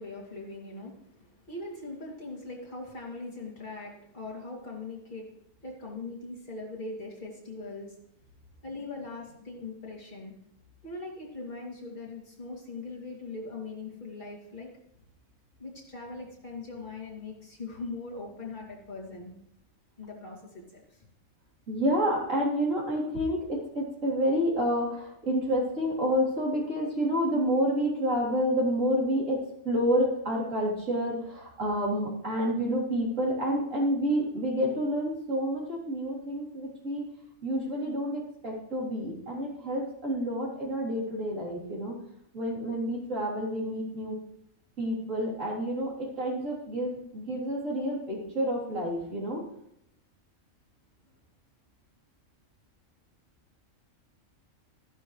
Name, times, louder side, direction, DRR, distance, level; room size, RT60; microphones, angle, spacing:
voice 1, 0.0-5.3 5.6-8.0 8.6-10.3 10.8-14.7 15.6-19.3 20.0-21.0, left 3 dB, 35° left, -3 dB, 2.8 m, -41 dB
voice 2, 21.7-37.0 37.4-41.9 42.3-44.2 44.8-49.4, equal, 70° right, -5 dB, 3.9 m, -29 dB
12.5 x 11.0 x 3.2 m, 0.76 s
omnidirectional pair, 1.4 m